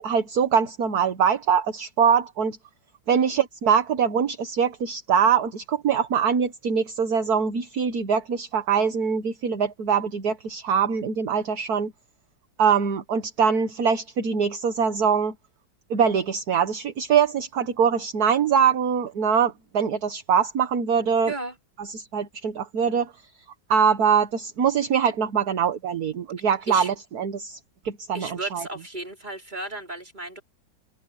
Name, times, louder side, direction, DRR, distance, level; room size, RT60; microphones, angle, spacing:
voice 1, 0.0-2.6 3.1-11.9 12.6-15.3 15.9-21.3 21.8-23.1 23.7-27.6 27.8-28.6, right 7 dB, 60° right, 1.8 m, -23 dB
voice 2, 21.2-21.6 26.4-26.9 28.1-30.4, right 2 dB, 25° right, 5.5 m, -35 dB
omnidirectional pair, 2.0 m